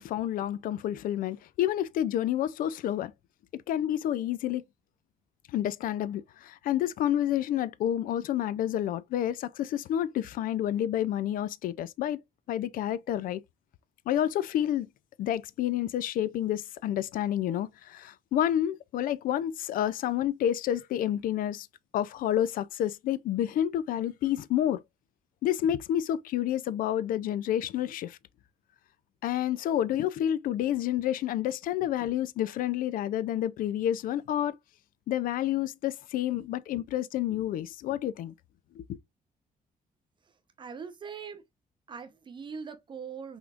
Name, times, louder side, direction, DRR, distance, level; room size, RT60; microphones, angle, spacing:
voice 1, 0.0-3.1 3.5-4.6 5.5-12.2 12.5-13.4 14.1-14.9 15.2-21.7 21.9-24.8 25.4-28.2 29.2-34.6 35.1-38.3 38.7-39.0, left 11 dB, 75° left, 0.4 m, -29 dB
voice 2, 40.6-41.4 41.9-43.4, right 6 dB, 35° right, 0.7 m, -41 dB
6.1 x 3.5 x 2.4 m
cardioid pair, 175°, 14 cm